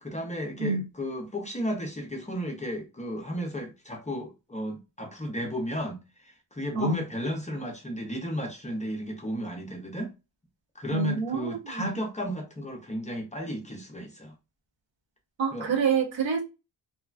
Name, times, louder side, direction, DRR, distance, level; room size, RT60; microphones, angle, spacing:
voice 1, 0.0-10.1 10.8-14.3 15.5-15.8, equal, 15° left, 0.5 m, -34 dB
voice 2, 10.9-11.9 15.4-16.4, right 5 dB, 85° right, 1.0 m, -27 dB
3.0 x 2.1 x 2.4 m
wide cardioid pair, 150°, 44 cm